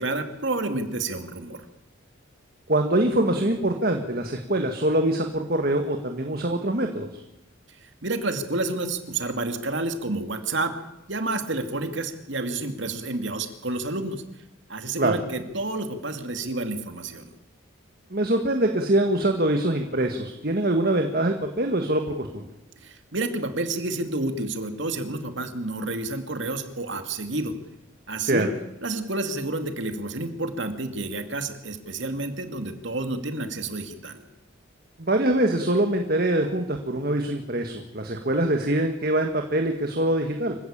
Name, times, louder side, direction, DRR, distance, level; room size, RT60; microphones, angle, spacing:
voice 1, 0.0-1.7 7.8-10.7 11.1-14.2 14.7-17.3 22.8-27.5 28.1-28.5 28.8-34.2, right 2 dB, 65° right, 7 dB, 2.4 m, -29 dB
voice 2, 2.7-7.1 15.0-15.2 18.1-22.4 28.2-28.5 35.0-40.6, right 1 dB, 45° right, 4 dB, 1.7 m, -24 dB
25.5 x 15.5 x 8.8 m, 0.91 s
head